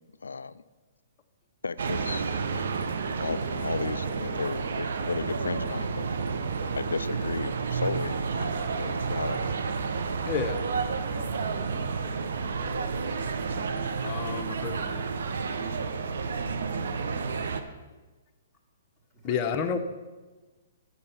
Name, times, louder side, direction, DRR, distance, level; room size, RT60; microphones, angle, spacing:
voice 1, 0.2-0.6 1.6-2.7 3.2-6.0 6.8-9.6, left 4 dB, 90° left, 15 dB, 0.3 m, -34 dB
sound 1, 1.8-17.6, right 5 dB, 70° right, 0.7 m, -31 dB
voice 2, 10.2-10.6 14.0-15.1 19.2-19.8, left 6 dB, 30° left, 5 dB, 0.8 m, -30 dB
voice 3, 11.0-13.0 19.2-19.7, equal, ahead, -7 dB, 1.6 m, -45 dB
8.6 x 6.6 x 5.5 m, 1.3 s
hypercardioid pair, 130°, 0 cm